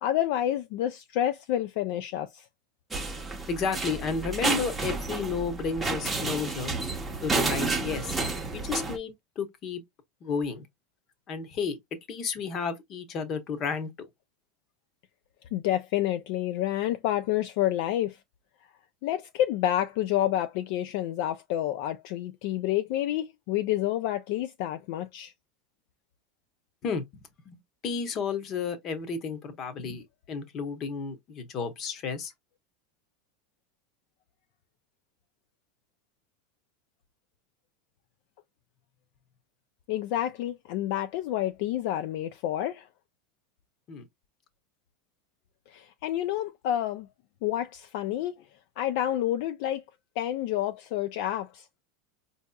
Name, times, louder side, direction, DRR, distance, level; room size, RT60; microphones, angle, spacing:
voice 1, 0.0-2.5 15.5-18.2 19.0-25.3 39.9-42.9 45.7-47.1 47.4-48.5 48.8-49.8 50.2-51.8, left 12 dB, 55° left, 0.4 m, -29 dB
sound 1, 2.9-9.0, right 3 dB, 10° right, 0.7 m, -31 dB
voice 2, 3.5-6.8 7.2-8.2 8.5-9.8 10.2-10.7 11.3-11.8 12.1-13.9 26.8-27.0 27.5-32.3 43.9-44.0, left 5 dB, 30° left, 0.9 m, -32 dB
4.6 x 2.7 x 2.3 m
supercardioid pair, 160°, 0 cm